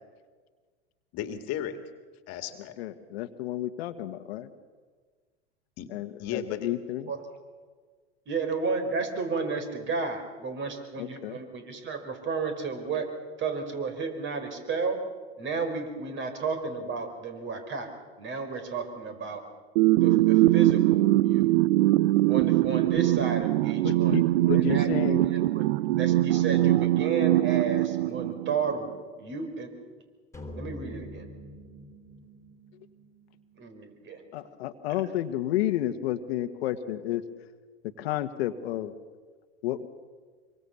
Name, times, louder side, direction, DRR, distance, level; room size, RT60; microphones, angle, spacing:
voice 1, 1.1-1.8 2.3-2.8 5.8-6.7, left 9 dB, 45° left, 7 dB, 2.2 m, -35 dB
voice 2, 2.8-4.5 5.9-7.1 11.0-11.4 23.8-25.2 34.3-37.2 38.0-38.9 39.6-39.9, left 13 dB, 65° left, 9 dB, 1.5 m, -31 dB
voice 3, 8.3-13.1 13.4-15.0 15.4-17.9 18.2-19.4 20.0-21.5 22.3-29.7 30.6-31.2 33.6-34.5 34.9-35.1, right 4 dB, 35° right, 6 dB, 4.7 m, -33 dB
sound 1, 19.8-28.8, right 16 dB, 60° right, 0.7 m, -22 dB
sound 2, 30.3-34.7, equal, 10° left, 3.6 m, -45 dB
25.0 x 23.5 x 7.1 m, 1.5 s
hypercardioid pair, 100°, 34 cm